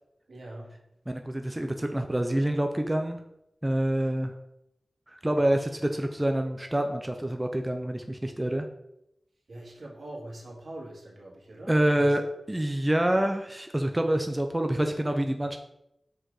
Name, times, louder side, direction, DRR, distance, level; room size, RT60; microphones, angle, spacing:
voice 1, 0.3-0.8 5.3-5.7 9.5-12.2, right 1 dB, 75° right, -3 dB, 2.1 m, -43 dB
voice 2, 1.1-3.2 3.6-4.3 5.1-8.7 11.7-12.2 12.5-15.6, right 1 dB, 15° right, 5 dB, 0.6 m, -27 dB
6.3 x 4.9 x 4.8 m, 0.82 s
wide cardioid pair, 75°, 0 cm